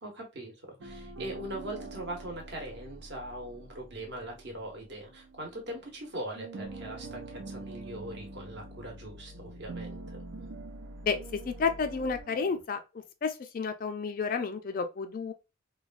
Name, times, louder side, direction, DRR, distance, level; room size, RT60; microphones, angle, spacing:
voice 1, 0.0-10.2, right 1 dB, 55° right, 1.0 m, -41 dB
sound 1, 0.8-6.0 6.3-12.6, right 2 dB, 85° right, 0.6 m, -45 dB
voice 2, 11.5-12.8 13.2-15.3, left 5 dB, 45° left, 0.3 m, -31 dB
3.1 x 2.2 x 2.4 m
head